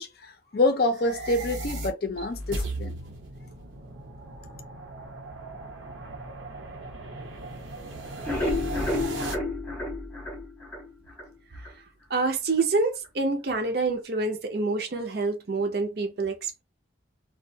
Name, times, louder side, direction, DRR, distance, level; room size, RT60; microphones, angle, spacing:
voice 1, 0.0-3.0, left 2 dB, 50° left, 0.5 m, -27 dB
sound 1, 0.8-9.3, right 2 dB, 90° right, 0.8 m, -37 dB
sound 2, 8.0-11.3 11.6-11.7 12.1-12.2 12.6-12.7, left 2 dB, 10° left, 0.6 m, -30 dB
voice 2, 12.1-16.6, right 3 dB, 55° right, 0.5 m, -27 dB
2.3 x 2.1 x 2.6 m
head